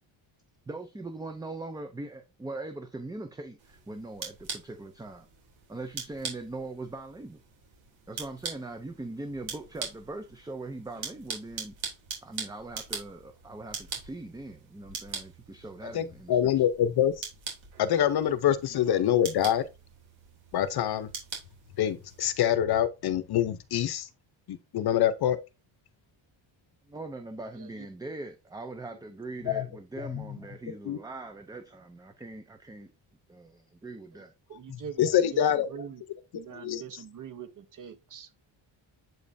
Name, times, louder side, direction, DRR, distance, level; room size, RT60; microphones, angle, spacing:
voice 1, 0.7-5.3 5.7-7.4 8.1-11.7 12.2-16.5 26.9-32.9 33.3-34.3, right 2 dB, 10° right, 0.4 m, -41 dB
sound 1, 3.6-22.4, right 6 dB, 70° right, 3.2 m, -43 dB
voice 2, 15.9-17.2 17.8-19.6 20.5-21.1 21.8-24.1 24.5-25.4 29.5-29.7 30.0-30.4 30.8-31.0 34.7-35.7 36.6-36.8, left 10 dB, 50° left, 0.7 m, -25 dB
voice 3, 27.5-27.9 29.3-29.6 34.1-34.2 34.5-36.0 36.3-38.3, right 8 dB, 40° right, 1.0 m, -44 dB
7.7 x 5.3 x 2.6 m
cardioid pair, 175°, 48 cm